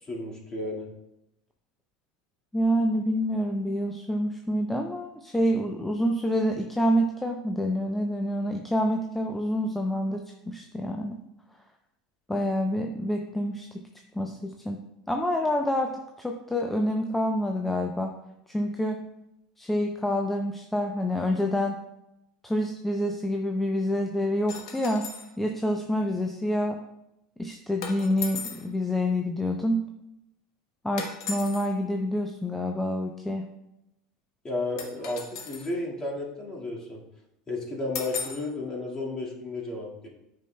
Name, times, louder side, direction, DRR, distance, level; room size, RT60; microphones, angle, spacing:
voice 1, 0.0-0.9 34.4-37.0 37.5-40.1, left 2 dB, 25° left, -3 dB, 1.8 m, -33 dB
voice 2, 2.5-11.2 12.3-13.7 14.1-15.9 16.2-18.1 18.5-19.0 19.6-21.8 22.4-25.1 25.4-26.8 27.4-29.8 30.8-33.4, equal, 5° left, 3 dB, 0.5 m, -27 dB
sound 1, 24.5-25.3 27.8-28.7 31.0-31.7 34.8-35.7 37.9-38.5, left 5 dB, 80° left, 1.1 m, -36 dB
8.9 x 5.4 x 2.2 m, 0.86 s
supercardioid pair, 105°, 3 cm